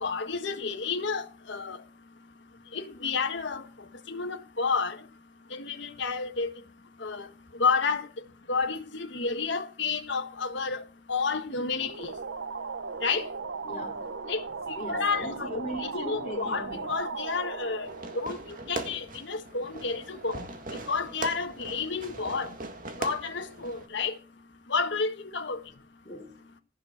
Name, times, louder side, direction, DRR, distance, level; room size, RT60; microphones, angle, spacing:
voice 1, 0.0-1.8 2.7-3.6 4.1-5.0 5.5-6.5 7.0-7.3 7.6-8.1 8.5-10.8 11.1-12.1 13.0-13.3 14.3-15.5 15.8-17.9 18.1-18.4 18.7-20.4 20.9-22.5 23.0-24.1 24.7-25.6, left 4 dB, 65° left, 1.5 m, -30 dB
sound 1, 11.8-19.2, right 4 dB, 65° right, 0.7 m, -37 dB
voice 2, 13.6-14.1 14.8-17.0 20.7-20.8 26.0-26.4, left 1 dB, 30° left, 3.3 m, -39 dB
Fireworks, 17.8-23.9, right 2 dB, 45° right, 2.0 m, -40 dB
15.0 x 6.7 x 8.0 m
head